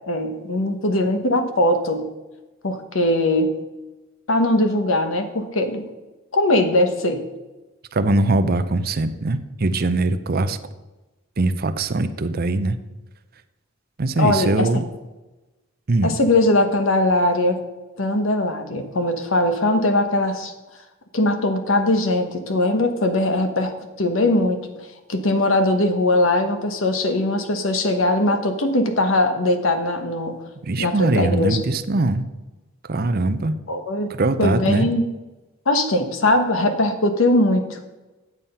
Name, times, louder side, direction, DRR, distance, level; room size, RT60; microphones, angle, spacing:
voice 1, 0.1-2.1 2.6-3.6 4.3-5.8 6.3-7.2 14.2-14.7 16.0-17.6 18.0-20.5 21.1-23.7 24.0-24.6 25.1-30.4 30.8-31.6 33.7-34.1 34.4-35.0 35.7-37.8, left 1 dB, 70° left, 7 dB, 1.2 m, -20 dB
voice 2, 7.9-10.6 11.4-12.8 14.0-14.8 15.9-16.1 30.6-32.2 32.8-33.5 34.1-34.9, right 2 dB, 45° right, 10 dB, 0.6 m, -21 dB
9.3 x 7.2 x 5.5 m, 1.1 s
head